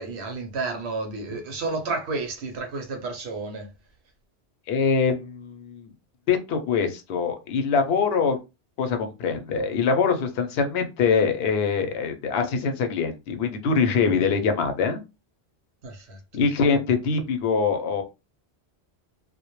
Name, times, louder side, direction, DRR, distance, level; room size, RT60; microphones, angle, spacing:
voice 1, 0.0-3.7 15.8-16.4, right 3 dB, 80° right, 0.9 m, -31 dB
voice 2, 4.7-5.9 6.3-8.4 8.8-15.0 16.3-18.0, left 5 dB, 75° left, 0.8 m, -23 dB
2.1 x 2.1 x 2.9 m
omnidirectional pair, 1.1 m